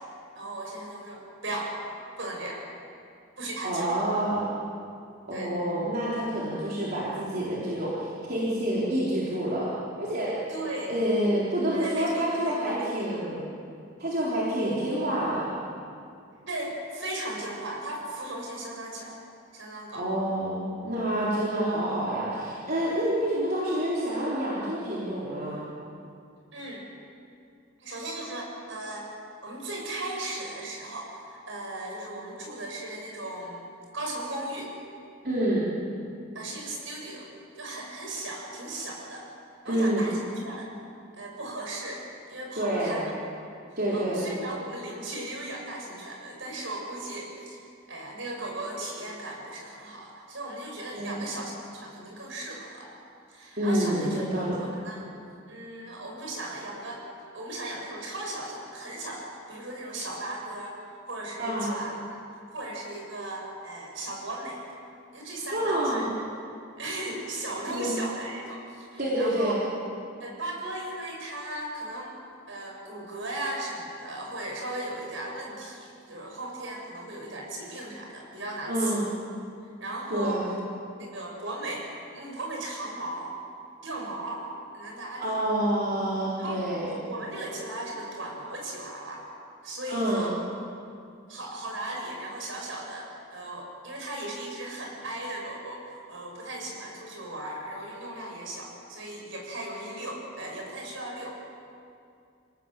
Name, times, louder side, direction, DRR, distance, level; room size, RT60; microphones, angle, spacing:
voice 1, 0.4-1.8 2.2-2.6 3.4-3.9 5.3-5.5 10.5-11.0 11.7-13.2 16.5-19.2 19.5-20.1 26.5-26.8 27.8-29.1 29.4-33.7 33.9-34.7 36.3-37.3 37.6-39.3 39.6-40.7 41.1-43.1 43.9-52.9 53.3-55.1 55.5-57.0 57.3-60.8 61.1-61.9 62.5-64.6 65.1-66.1 66.8-69.6 70.2-72.1 72.5-79.1 79.8-80.4 81.0-81.9 82.1-83.3 83.8-84.4 84.7-85.3 86.4-89.2 89.6-90.4 91.3-101.4, right 1 dB, 65° right, -1 dB, 6.9 m, -37 dB
voice 2, 3.6-4.5 5.3-9.7 10.0-10.3 10.9-13.4 14.0-15.5 19.9-25.7 35.2-35.7 39.7-40.1 42.6-43.0 43.8-44.2 50.9-51.3 53.6-54.6 61.4-61.7 65.5-66.1 67.7-68.0 69.0-69.6 78.6-79.1 80.1-80.5 85.2-86.9 89.9-90.3, right 1 dB, 45° right, -7 dB, 4.1 m, -28 dB
27.5 x 18.0 x 7.6 m, 2.4 s
head